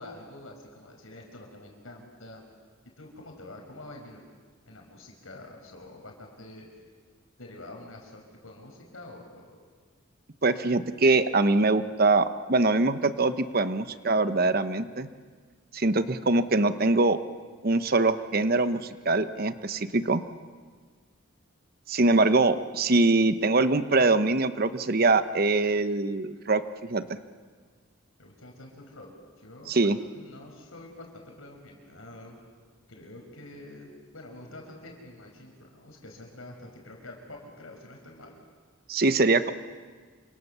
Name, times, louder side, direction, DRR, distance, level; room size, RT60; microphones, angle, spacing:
voice 1, 0.0-2.4 3.0-4.2 4.7-6.7 7.4-9.5 28.2-29.1 29.4-29.7 30.1-32.4 32.9-38.3, left 1 dB, 85° left, 1 dB, 5.6 m, -46 dB
voice 2, 10.4-15.1 15.7-17.2 17.6-20.2 21.9-27.0 29.7-30.0 38.9-39.5, right 3 dB, 45° right, 11 dB, 1.1 m, -23 dB
28.0 x 25.5 x 7.0 m, 1.5 s
head